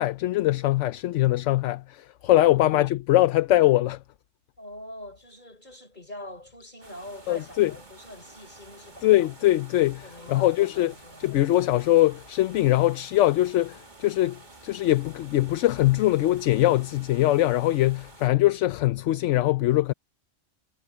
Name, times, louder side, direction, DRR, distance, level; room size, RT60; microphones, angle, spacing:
voice 1, 0.0-4.0 7.3-7.7 9.0-10.9 11.2-19.9, left 15 dB, 80° left, 0.9 m, -22 dB
voice 2, 4.6-9.2 10.0-11.3, left 1 dB, 40° left, 5.3 m, -44 dB
Rain and thunder by a window, 6.8-18.3, right 2 dB, 40° right, 2.2 m, -50 dB
omnidirectional pair, 1.2 m